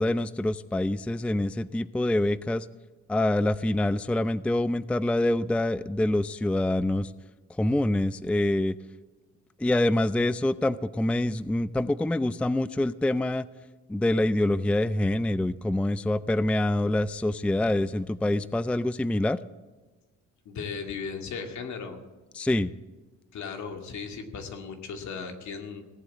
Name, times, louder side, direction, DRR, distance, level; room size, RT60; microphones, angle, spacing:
voice 1, 0.0-2.7 3.1-7.1 7.6-8.8 9.6-13.5 13.9-19.4 22.3-22.7, left 1 dB, 5° left, 15 dB, 0.4 m, -26 dB
voice 2, 20.5-22.0 23.3-25.8, left 5 dB, 70° left, 4 dB, 2.4 m, -36 dB
18.0 x 7.7 x 8.5 m, 1.2 s
cardioid pair, 90°, 30 cm